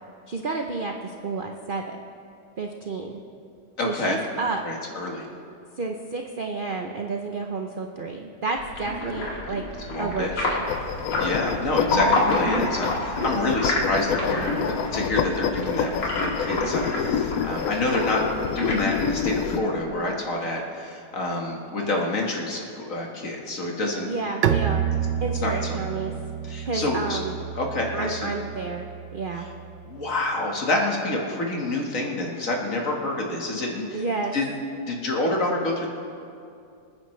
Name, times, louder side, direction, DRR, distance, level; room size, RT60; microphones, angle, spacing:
voice 1, 0.3-2.0 2.6-3.2 3.8-4.6 5.8-9.6 10.0-10.6 24.1-24.9 25.2-26.1 26.7-27.4 27.9-29.5 33.9-34.3, right 3 dB, 60° right, 3 dB, 0.5 m, -30 dB
voice 2, 3.8-4.2 4.6-5.3 9.9-10.3 11.2-24.1 25.4-25.9 26.4-27.2 27.5-28.3 29.9-34.0 34.3-34.5 34.9-35.9, left 2 dB, 50° left, 0 dB, 1.9 m, -27 dB
sound 1, 8.6-19.6, left 2 dB, 90° left, 2.8 m, -29 dB
sound 2, 10.7-19.6, left 7 dB, 65° left, 0.9 m, -28 dB
Bowed string instrument, 24.4-30.0, right 9 dB, 80° right, 1.3 m, -29 dB
26.5 x 9.6 x 3.2 m, 2.5 s
omnidirectional pair, 1.9 m